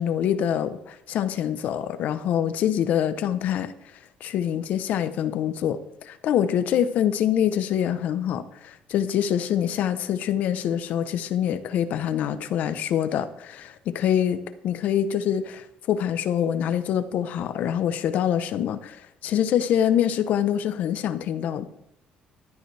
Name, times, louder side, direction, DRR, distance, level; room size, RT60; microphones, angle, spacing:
voice 1, 0.0-3.7 4.2-21.7, left 9 dB, 60° left, 12 dB, 0.9 m, -25 dB
14.5 x 12.0 x 3.4 m, 0.80 s
cardioid pair, 165°, 3 cm